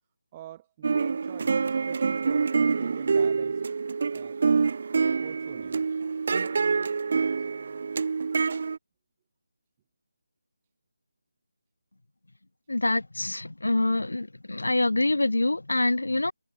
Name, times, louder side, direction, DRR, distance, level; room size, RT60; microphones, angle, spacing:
voice 1, 0.3-3.6 4.1-4.4 5.2-5.8, right 13 dB, 20° right, 6.2 m, -46 dB
sound 1, 0.8-8.8, right 5 dB, 45° right, 2.1 m, -26 dB
voice 2, 12.7-16.3, left 2 dB, 80° left, 2.6 m, -25 dB
figure-of-eight pair, 160°, 0 cm